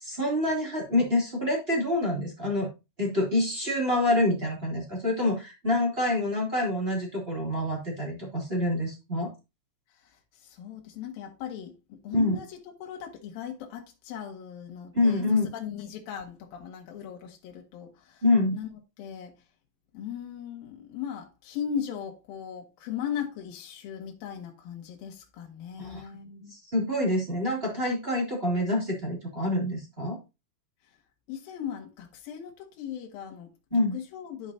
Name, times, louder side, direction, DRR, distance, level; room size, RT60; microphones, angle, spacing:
voice 1, 0.0-2.7 3.0-9.3 12.1-12.4 14.9-15.5 18.2-18.6 25.8-26.0 26.7-30.2 33.7-33.9, left 1 dB, 20° right, 1.8 m, -26 dB
voice 2, 10.0-18.2 18.5-18.7 19.0-19.3 19.9-26.5 31.3-34.5, left 8 dB, 60° left, 3.1 m, -38 dB
12.5 x 5.1 x 2.8 m
omnidirectional pair, 5.1 m